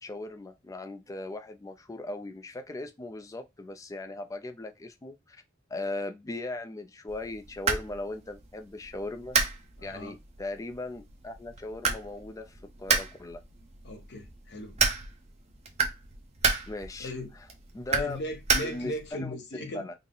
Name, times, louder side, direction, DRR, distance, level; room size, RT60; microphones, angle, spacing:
voice 1, 0.0-5.4 5.7-9.4 9.8-13.4 16.7-17.5 17.7-18.2 18.6-19.9, left 2 dB, 15° left, 0.3 m, -38 dB
sound 1, 7.1-19.1, right 5 dB, 30° right, 0.7 m, -32 dB
voice 2, 9.8-10.2 13.8-14.8 17.0-17.3 17.9-19.9, left 1 dB, 55° left, 0.8 m, -37 dB
3.8 x 2.0 x 3.7 m
head